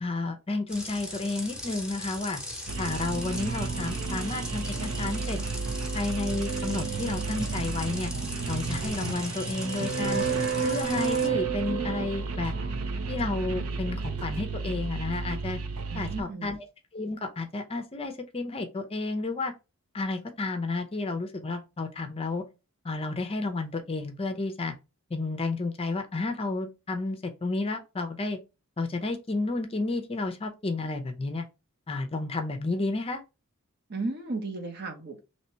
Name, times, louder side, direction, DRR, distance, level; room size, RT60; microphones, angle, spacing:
voice 1, 0.0-2.4 2.8-5.4 5.9-8.1 8.5-10.3 10.6-12.5 13.1-15.6 15.9-16.6 16.9-19.5 19.9-22.4 22.8-24.7 25.1-28.4 28.8-31.5 31.9-33.2, left 3 dB, 25° left, 0.5 m, -31 dB
sound 1, 0.7-11.3, left 1 dB, 5° right, 0.9 m, -40 dB
sound 2, 2.7-16.2, right 4 dB, 85° right, 0.6 m, -31 dB
voice 2, 15.9-16.6 33.9-35.2, right 3 dB, 50° right, 0.9 m, -34 dB
3.0 x 2.8 x 4.3 m
head